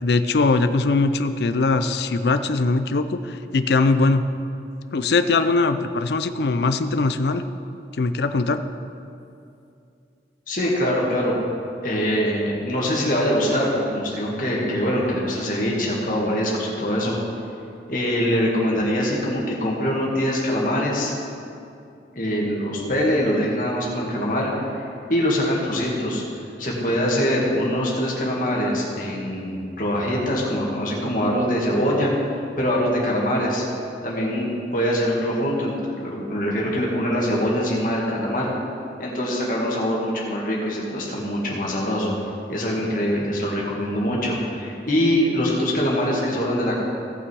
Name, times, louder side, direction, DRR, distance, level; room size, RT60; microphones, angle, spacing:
voice 1, 0.0-4.3 4.9-7.4 8.0-8.6, left 3 dB, 70° left, 10 dB, 0.5 m, -21 dB
voice 2, 10.5-11.4 11.8-17.1 17.9-21.1 22.1-26.2 26.6-32.1 32.6-33.6 34.0-38.5 39.0-42.1 42.5-46.8, equal, 50° left, -3 dB, 2.1 m, -23 dB
17.0 x 6.1 x 4.7 m, 2.6 s
head